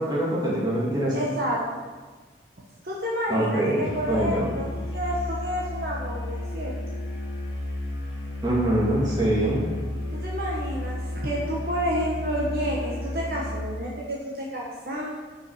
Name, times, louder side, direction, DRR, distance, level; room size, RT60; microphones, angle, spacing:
voice 1, 0.0-1.2 3.3-4.5 8.4-9.6, right 1 dB, 20° right, -6 dB, 1.9 m, -24 dB
voice 2, 1.1-1.8 2.8-6.7 10.1-15.1, equal, 55° right, -4 dB, 1.1 m, -30 dB
Musical instrument, 3.8-13.7, left 1 dB, 70° left, 1.7 m, -32 dB
6.2 x 5.4 x 5.6 m, 1.3 s
head